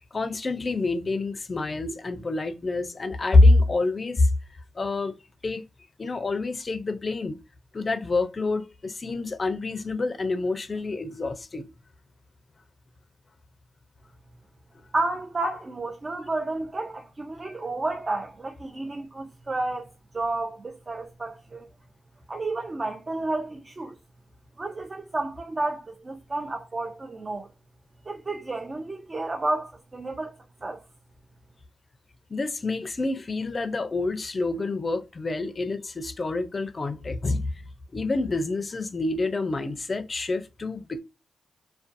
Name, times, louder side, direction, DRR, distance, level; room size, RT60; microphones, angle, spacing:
voice 1, 0.0-4.3 4.8-5.1 5.4-5.6 6.0-7.4 7.7-11.7 32.3-37.5 37.9-41.0, left 2 dB, 40° left, 0.4 m, -26 dB
voice 2, 14.9-21.7 22.3-24.0 24.6-27.5 28.1-30.4 30.6-30.8, right 2 dB, 40° right, 0.5 m, -31 dB
2.5 x 2.2 x 2.5 m
supercardioid pair, 55°, 0 cm